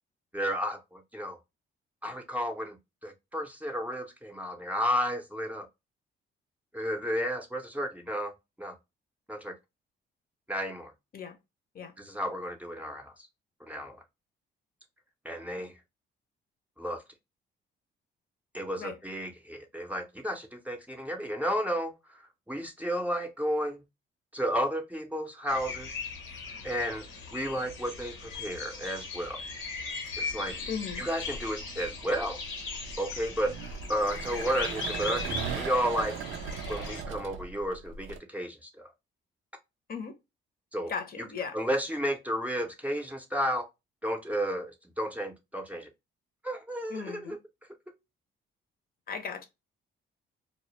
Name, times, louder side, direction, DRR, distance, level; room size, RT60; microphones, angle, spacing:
voice 1, 0.3-1.4 2.0-2.8 3.0-5.7 6.7-8.3 8.6-8.8 9.3-9.5 10.5-10.9 12.0-13.1 13.6-14.0 15.2-15.7 16.8-17.0 18.5-21.9 22.5-23.8 24.3-26.0 26.6-29.4 30.2-30.6 31.0-32.4 33.0-33.5 33.9-36.2 36.6-38.9 40.7-40.9 41.5-43.7 44.0-45.9 46.4-47.4, equal, 5° right, 0.5 m, -32 dB
sound 1, 25.5-37.0, left 4 dB, 90° left, 0.8 m, -39 dB
sound 2, 28.3-28.8 29.9-38.2, right 6 dB, 80° right, 0.4 m, -39 dB
voice 2, 30.7-31.0 39.9-40.2 40.9-41.6 46.9-47.4 49.1-49.4, left 6 dB, 50° left, 0.6 m, -37 dB
2.1 x 2.1 x 2.8 m
cardioid pair, 90°, 20 cm